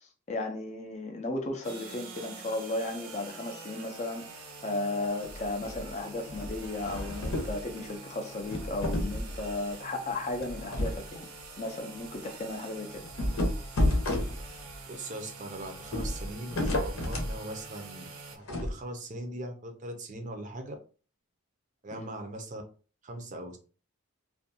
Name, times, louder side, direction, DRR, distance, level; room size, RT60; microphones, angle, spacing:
voice 1, 0.0-11.3 11.6-13.0 21.9-22.1, left 2 dB, 30° left, 0.4 m, -35 dB
sound 1, 1.6-18.4, right 4 dB, 85° right, 0.6 m, -46 dB
sound 2, 5.2-5.9 6.2-7.6 8.3-9.5 10.4-11.0 11.4-11.5 11.9-12.0 13.0-14.8 15.8-17.4 18.5-18.7, left 1 dB, 70° left, 0.8 m, -31 dB
voice 2, 14.9-20.8 21.8-22.6 23.0-23.6, right 1 dB, 35° right, 0.4 m, -40 dB
2.5 x 2.2 x 2.6 m
head